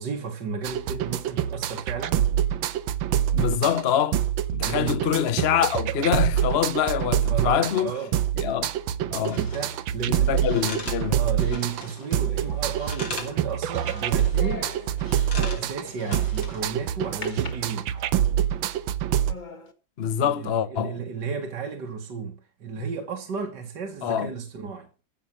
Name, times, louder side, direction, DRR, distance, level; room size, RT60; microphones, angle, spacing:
voice 1, 0.0-2.3 4.6-5.0 7.2-8.1 9.3-10.8 11.1-14.8 15.4-17.9 20.2-24.9, right 5 dB, 65° right, 2.3 m, -33 dB
sound 1, 0.6-19.3, right 10 dB, 85° right, 1.6 m, -26 dB
voice 2, 3.3-4.2 4.5-7.9 8.4-8.7 9.1-9.5 10.1-11.2 20.0-21.0 24.0-24.3, left 9 dB, 50° left, 0.8 m, -25 dB
sound 2, 9.3-9.8 10.3-12.2 12.5-13.4 13.7-14.5 15.0-16.7 17.1-17.3, left 3 dB, 70° left, 3.7 m, -40 dB
sound 3, 12.2-16.5 17.2-18.3 18.8-18.9 19.3-19.7, left 3 dB, 25° left, 1.6 m, -42 dB
15.0 x 6.4 x 7.3 m
omnidirectional pair, 2.1 m